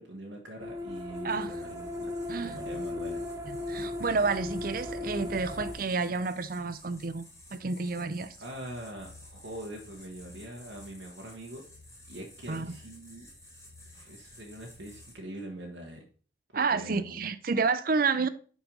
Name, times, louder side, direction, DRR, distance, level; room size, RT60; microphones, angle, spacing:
voice 1, 0.0-3.2 8.4-11.6 12.1-13.3 13.9-16.0 16.5-17.3, right 1 dB, 70° right, 1.3 m, -43 dB
sound 1, 0.6-5.7, left 2 dB, 15° right, 1.0 m, -37 dB
sound 2, 0.8-15.1, left 1 dB, 15° left, 2.1 m, -53 dB
voice 2, 2.3-2.6 3.7-7.2 7.5-8.4 12.5-12.7 16.5-18.3, right 4 dB, 50° right, 0.5 m, -30 dB
5.9 x 5.4 x 5.4 m
head